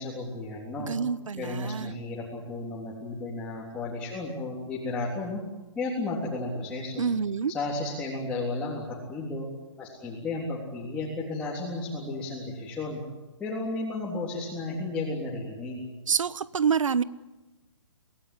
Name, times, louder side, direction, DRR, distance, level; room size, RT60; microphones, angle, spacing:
voice 1, 0.0-0.9 1.4-5.4 5.8-7.1 7.5-9.5 9.8-13.0 13.4-15.8, left 2 dB, 5° left, -5 dB, 3.6 m, -33 dB
voice 2, 0.8-1.9 7.0-7.5 16.1-17.0, right 6 dB, 85° right, 18 dB, 1.1 m, -27 dB
27.0 x 17.5 x 9.9 m, 1.1 s
hypercardioid pair, 160°, 16 cm